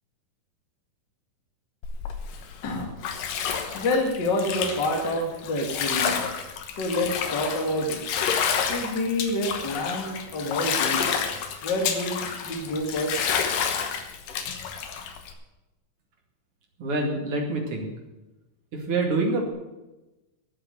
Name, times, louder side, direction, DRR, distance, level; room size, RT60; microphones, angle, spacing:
Bathtub (filling or washing), 1.8-15.3, left 7 dB, 80° left, 2.8 m, -29 dB
voice 1, 2.6-3.4 3.7-6.2 6.8-8.0 8.7-11.1 11.6-13.3 13.8-13.9, left 1 dB, 40° left, 2 dB, 2.2 m, -28 dB
voice 2, 16.8-17.9 18.7-19.5, right 2 dB, 45° right, 0 dB, 3.0 m, -26 dB
12.0 x 7.7 x 9.1 m, 1.0 s
omnidirectional pair, 3.9 m